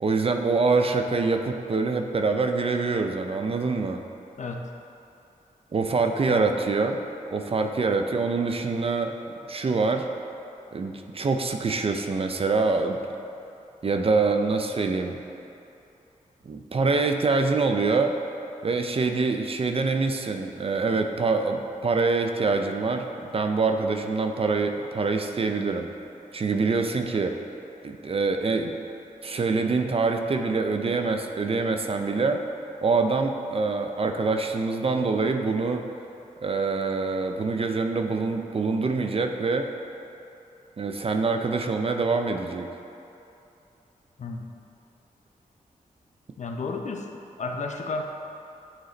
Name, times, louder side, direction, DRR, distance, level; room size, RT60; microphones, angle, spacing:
voice 1, 0.0-4.0 5.7-7.0 7.3-9.2 9.5-10.1 10.7-13.0 13.8-15.2 16.5-18.1 18.6-23.1 23.3-25.9 26.3-27.4 27.8-28.7 29.2-32.4 32.8-35.8 36.4-39.7 40.8-42.7, right 4 dB, 40° right, 5 dB, 0.4 m, -25 dB
voice 2, 44.2-44.5 46.4-47.1 47.4-48.0, left 3 dB, 55° left, 3 dB, 0.5 m, -32 dB
8.9 x 3.1 x 3.9 m, 2.8 s
cardioid pair, 75°, 15 cm